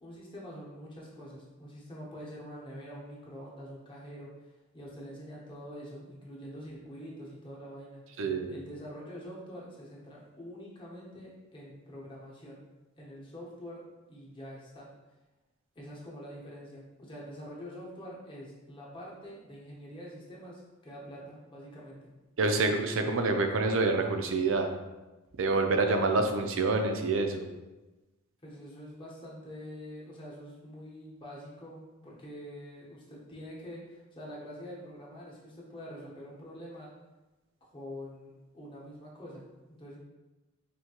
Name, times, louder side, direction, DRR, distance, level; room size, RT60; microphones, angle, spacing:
voice 1, 0.0-8.1 8.5-12.6 13.0-13.8 14.1-14.9 15.7-22.1 28.4-36.9 37.7-40.0, equal, 25° left, -5 dB, 0.9 m, -45 dB
voice 2, 8.2-8.5 22.4-24.7 25.4-27.5, right 3 dB, 65° right, 5 dB, 0.4 m, -27 dB
4.4 x 2.7 x 2.8 m, 1.1 s
head